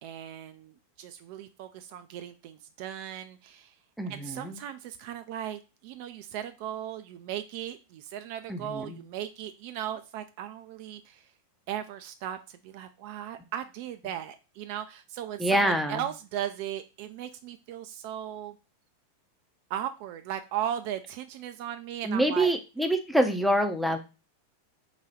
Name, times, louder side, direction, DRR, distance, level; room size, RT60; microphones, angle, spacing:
voice 1, 0.0-3.7 4.1-11.3 11.7-18.6 19.7-22.5, right 10 dB, 45° right, 8 dB, 0.4 m, -37 dB
voice 2, 4.0-4.6 8.5-9.0 15.4-16.0 22.0-24.0, right 1 dB, ahead, 5 dB, 0.6 m, -26 dB
4.0 x 2.3 x 4.4 m, 0.30 s
figure-of-eight pair, 90°, 0 cm